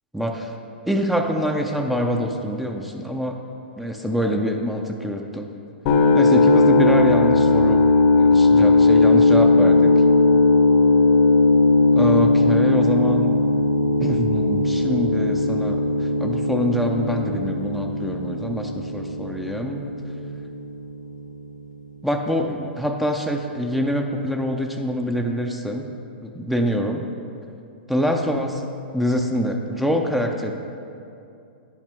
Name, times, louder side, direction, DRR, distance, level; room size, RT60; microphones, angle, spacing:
voice 1, 0.1-0.6 0.9-3.4 3.8-5.5 6.1-7.8 8.2-9.9 12.0-13.4 14.0-19.9 22.0-25.9 26.2-27.0 27.9-28.6 28.9-30.5, equal, ahead, 2 dB, 0.4 m, -25 dB
sound 1, 5.9-21.8, left 2 dB, 40° left, 0.7 m, -18 dB
10.0 x 5.7 x 3.5 m, 2.6 s
hypercardioid pair, 120°, 6 cm